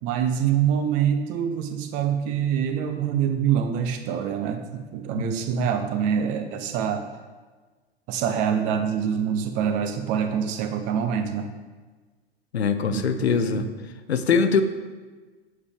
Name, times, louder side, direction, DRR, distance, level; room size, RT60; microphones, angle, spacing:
voice 1, 0.0-7.1 8.1-11.5 12.9-13.7, right 8 dB, 25° right, 7 dB, 0.4 m, -25 dB
voice 2, 5.1-5.7 12.5-13.7 14.1-14.6, left 5 dB, 75° left, 9 dB, 0.6 m, -23 dB
7.9 x 5.2 x 3.4 m, 1.4 s
figure-of-eight pair, 90°, 32 cm